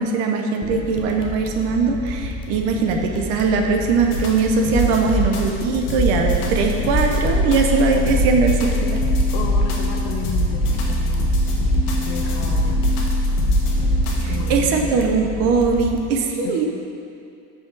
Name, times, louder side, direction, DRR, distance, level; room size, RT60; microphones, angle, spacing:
voice 1, 0.0-9.0 14.2-16.7, right 4 dB, 50° right, 3 dB, 0.7 m, -20 dB
sound 1, 0.6-16.0, left 3 dB, 15° left, 0.5 m, -32 dB
sound 2, 4.1-14.6, equal, 65° left, 1.3 m, -21 dB
voice 2, 7.9-8.3 9.3-11.3 11.7-12.8 14.3-15.0 16.4-16.7, left 6 dB, 80° left, 1 dB, 0.7 m, -33 dB
5.7 x 5.5 x 4.6 m, 2.5 s
cardioid pair, 170°, 32 cm